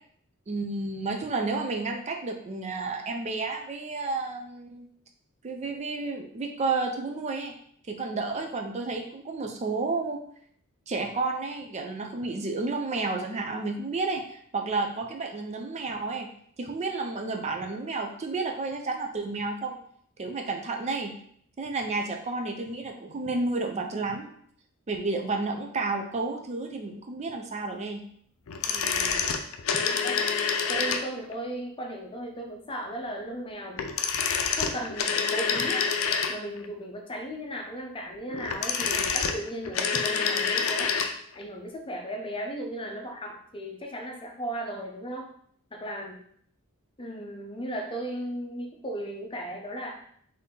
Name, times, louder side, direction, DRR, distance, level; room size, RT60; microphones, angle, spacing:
voice 1, 0.5-4.9 5.4-7.5 7.9-10.2 10.9-16.3 16.6-19.8 20.2-21.1 21.6-24.3 24.9-28.0, right 3 dB, 30° right, 4 dB, 0.4 m, -31 dB
sound 1, 28.5-31.3 33.7-36.7 38.3-41.2 41.4-41.5, left 6 dB, 75° left, 0.5 m, -27 dB
voice 2, 28.7-29.3 29.7-30.3 30.7-34.0 34.6-35.9 36.3-40.9 41.3-45.3 45.7-46.2 47.0-50.0, right 1 dB, 25° left, 1 dB, 0.6 m, -36 dB
4.1 x 2.7 x 3.7 m, 0.63 s
head